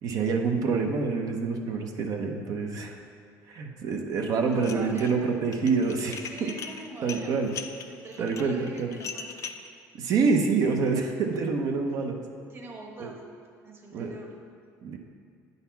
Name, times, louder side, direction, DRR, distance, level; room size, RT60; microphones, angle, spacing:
voice 1, 0.0-3.0 3.5-6.5 7.0-7.5 8.2-8.9 10.0-12.2 13.0-13.1 13.9-14.2 14.8-15.0, right 4 dB, 55° right, 2 dB, 0.7 m, -27 dB
voice 2, 4.4-5.2 6.0-7.4 7.8-9.4 9.6-9.7 12.5-13.3 13.6-14.4, right 2 dB, 30° right, 1 dB, 1.3 m, -44 dB
Dishes pots and pans, 4.5-5.1 5.4-9.7, left 6 dB, 45° left, 0.5 m, -40 dB
9.0 x 4.1 x 5.7 m, 2.3 s
cardioid pair, 110°, 7 cm